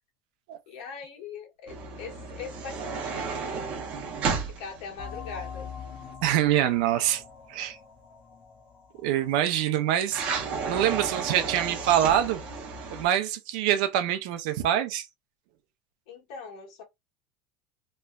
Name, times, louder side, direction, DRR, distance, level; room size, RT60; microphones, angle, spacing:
voice 1, 0.7-3.8 4.5-5.7 16.1-16.8, left 5 dB, 75° left, 1.3 m, -41 dB
sound 1, 1.7-6.1 10.1-13.0, right 5 dB, 35° right, 0.7 m, -33 dB
sound 2, 5.0-10.3, left 6 dB, 25° left, 0.4 m, -43 dB
voice 2, 6.2-7.2 7.5-7.8 9.0-10.2 10.7-12.4 12.9-15.1, right 11 dB, 70° right, 0.6 m, -25 dB
3.0 x 2.2 x 2.2 m
cardioid pair, 180°, 4 cm